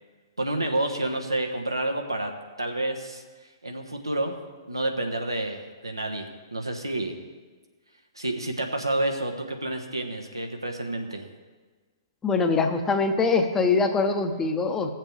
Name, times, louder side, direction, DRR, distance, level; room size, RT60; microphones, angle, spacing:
voice 1, 0.4-2.3 2.6-3.2 3.6-4.4 4.7-7.1 8.1-11.3, right 1 dB, 90° right, 4 dB, 1.2 m, -29 dB
voice 2, 12.2-14.9, left 4 dB, 15° left, 6 dB, 0.8 m, -23 dB
16.5 x 7.4 x 3.3 m, 1.4 s
figure-of-eight pair, 115°, 2 cm